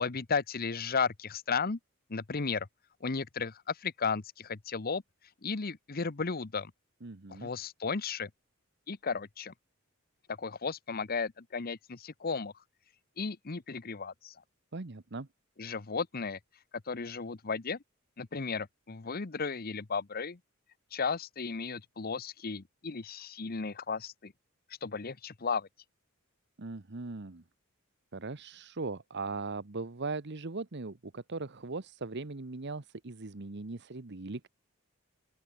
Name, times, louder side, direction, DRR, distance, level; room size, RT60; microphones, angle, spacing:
voice 1, 0.0-1.8 2.1-2.7 3.0-5.0 5.4-6.7 7.3-8.3 8.9-9.5 10.3-12.5 13.2-14.3 15.6-16.4 16.9-17.8 18.2-20.4 20.9-24.3 24.8-25.7, left 5 dB, 45° left, 0.9 m, -34 dB
voice 2, 7.0-7.5 14.7-15.3 26.6-27.4 28.1-34.5, right 3 dB, 55° right, 1.1 m, -39 dB
open air
head